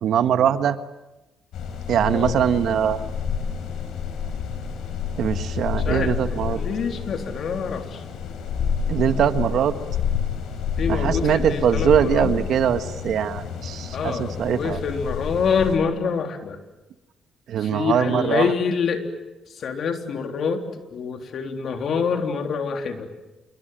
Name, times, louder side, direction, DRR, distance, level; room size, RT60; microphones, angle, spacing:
voice 1, 0.0-0.8 1.9-3.0 5.2-6.6 8.9-9.7 10.9-14.8 17.5-18.5, right 9 dB, 70° right, 10 dB, 1.6 m, -22 dB
sound 1, 1.5-15.8, left 6 dB, 80° left, 4.7 m, -29 dB
voice 2, 5.9-8.0 10.8-12.3 13.9-16.6 17.6-19.0 19.6-20.6 20.9-23.1, left 6 dB, 60° left, 5 dB, 3.7 m, -26 dB
27.5 x 23.5 x 9.2 m, 1.0 s
cardioid pair, 90°, 0 cm